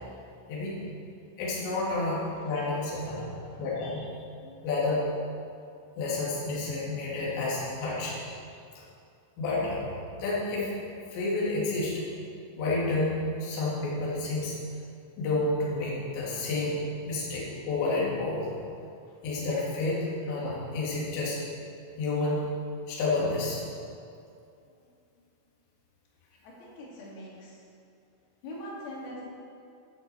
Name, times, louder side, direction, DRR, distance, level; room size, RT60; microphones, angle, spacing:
voice 1, 1.4-3.3 3.6-4.1 4.4-5.1 6.0-8.2 9.4-10.7 11.1-12.0 12.6-14.6 15.2-16.8 17.0-18.5 19.2-21.4 22.0-22.5 22.9-23.6, left 2 dB, 65° left, -6 dB, 4.6 m, -30 dB
voice 2, 26.4-27.5 28.4-29.2, left 1 dB, 85° left, -6 dB, 5.3 m, -42 dB
12.5 x 7.5 x 7.9 m, 2.5 s
omnidirectional pair, 5.9 m